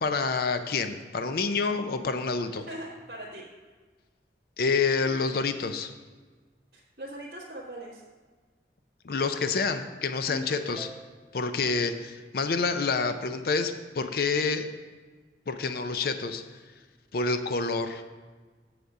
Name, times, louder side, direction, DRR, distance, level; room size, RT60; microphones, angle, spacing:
voice 1, 0.0-2.7 4.6-5.9 9.0-10.9 11.3-14.7 15.5-16.4 17.1-18.0, left 4 dB, 55° left, 9 dB, 0.5 m, -28 dB
voice 2, 2.7-3.4 6.7-8.0, right 1 dB, 60° right, -8 dB, 1.5 m, -40 dB
Ringtone, 10.3-11.4, equal, ahead, 0.8 m, -42 dB
7.9 x 6.5 x 4.8 m, 1.4 s
head